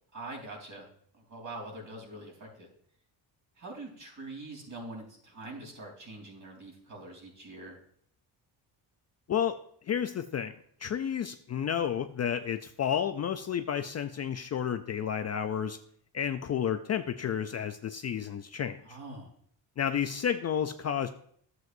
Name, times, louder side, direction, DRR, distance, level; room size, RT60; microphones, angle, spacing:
voice 1, 0.1-0.9 1.3-2.7 3.6-7.8 18.8-19.3, right 2 dB, 45° right, -1 dB, 3.5 m, -44 dB
voice 2, 9.9-10.5 10.8-15.8 16.1-18.8 19.8-21.1, left 8 dB, 40° left, 8 dB, 0.4 m, -31 dB
12.0 x 7.9 x 2.6 m, 0.63 s
cardioid pair, 125°, 44 cm